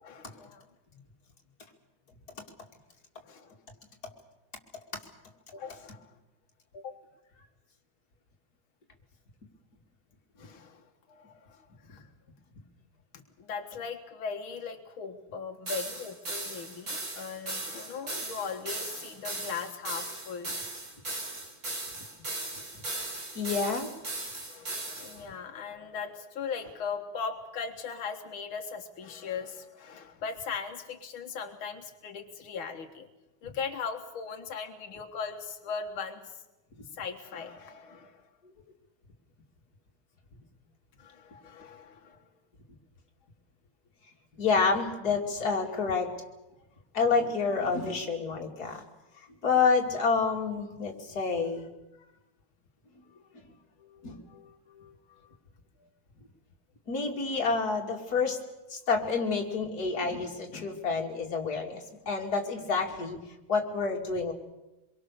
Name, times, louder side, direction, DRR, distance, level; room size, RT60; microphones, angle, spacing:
voice 1, 0.0-0.6 3.2-3.6 5.5-6.1 6.7-7.0 10.4-12.1 13.4-20.6 24.5-33.1 33.4-36.4 36.9-38.3 41.0-42.3 51.9-52.1 53.1-53.2 53.8-55.4 55.8-55.9, left 5 dB, 90° left, 4 dB, 2.2 m, -39 dB
sound 1, 15.7-25.2, right 2 dB, 45° right, 5.4 m, -37 dB
voice 2, 23.3-23.9 44.4-46.1 46.9-48.8 49.4-51.7 54.0-54.2 56.9-58.4 58.7-63.2 63.5-64.3, left 4 dB, 50° left, 0 dB, 3.0 m, -28 dB
25.5 x 23.0 x 6.8 m, 1.0 s
omnidirectional pair, 2.2 m